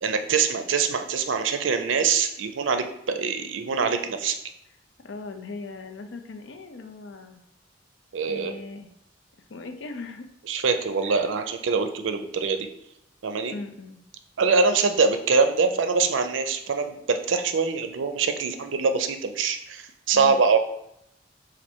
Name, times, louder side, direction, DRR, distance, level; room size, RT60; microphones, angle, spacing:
voice 1, 0.0-4.4 8.1-8.5 10.5-12.7 13.2-13.5 14.4-20.6, right 5 dB, 80° right, 7 dB, 0.4 m, -24 dB
voice 2, 5.0-7.4 8.3-8.9 9.5-10.3 11.0-11.3 13.5-14.0 20.1-20.4, left 3 dB, 70° left, 7 dB, 0.5 m, -39 dB
4.3 x 2.5 x 4.3 m, 0.77 s
head